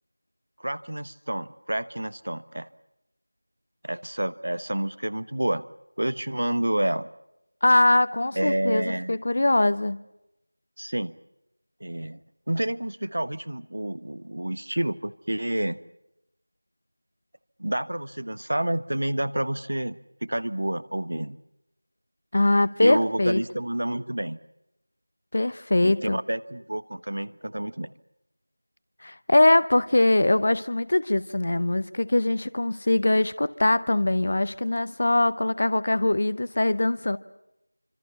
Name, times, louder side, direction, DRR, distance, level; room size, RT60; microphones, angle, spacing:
voice 1, 0.6-2.7 3.8-5.6 6.0-7.1 8.3-9.1 10.8-11.1 11.8-12.2 12.5-15.8 17.6-21.4 22.8-24.4 25.8-27.9, right 1 dB, 50° right, 15 dB, 1.2 m, -29 dB
voice 2, 7.6-10.0 22.3-23.4 25.3-26.2 29.0-37.2, left 2 dB, 35° left, 17 dB, 0.8 m, -22 dB
28.0 x 26.0 x 5.8 m, 0.86 s
figure-of-eight pair, 175°, 0 cm